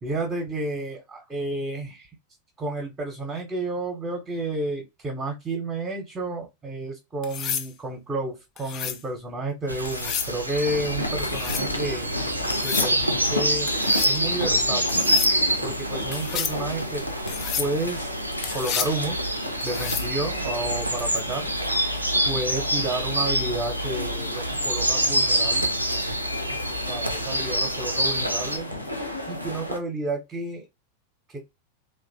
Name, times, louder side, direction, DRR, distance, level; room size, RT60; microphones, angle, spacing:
voice 1, 0.0-2.1 2.6-12.1 12.6-13.7 14.0-15.1 15.6-17.1 17.6-18.1 18.5-19.2 19.6-21.5 22.2-25.7 26.9-28.7 29.3-30.7 31.3-31.4, right 2 dB, 20° right, 0.8 m, -31 dB
sound 1, 7.2-7.7 8.6-9.0 9.9-10.3 11.2-11.7 12.5-12.9 13.7-14.2 14.9-15.3 16.1-16.6 17.3-17.7 18.4-19.0 19.6-20.1 22.0-22.3, left 8 dB, 35° left, 0.4 m, -31 dB
sound 2, 9.7-28.6, right 1 dB, 85° right, 0.4 m, -27 dB
sound 3, 10.6-29.8, left 1 dB, 85° left, 0.5 m, -33 dB
2.9 x 2.2 x 2.5 m
figure-of-eight pair, 90°, 0 cm